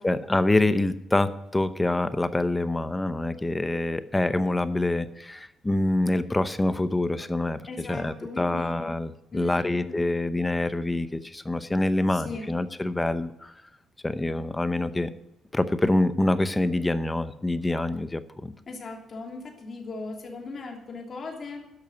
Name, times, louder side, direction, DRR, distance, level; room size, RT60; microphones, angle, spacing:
voice 1, 0.0-7.6 7.9-13.5 14.0-15.1 15.5-18.5, left 2 dB, 15° left, 13 dB, 0.8 m, -26 dB
voice 2, 7.7-8.9 9.3-10.1 12.1-12.5 18.7-21.7, left 3 dB, 45° left, 1 dB, 3.0 m, -38 dB
10.5 x 6.4 x 9.2 m, 0.92 s
cardioid pair, 90°, 0 cm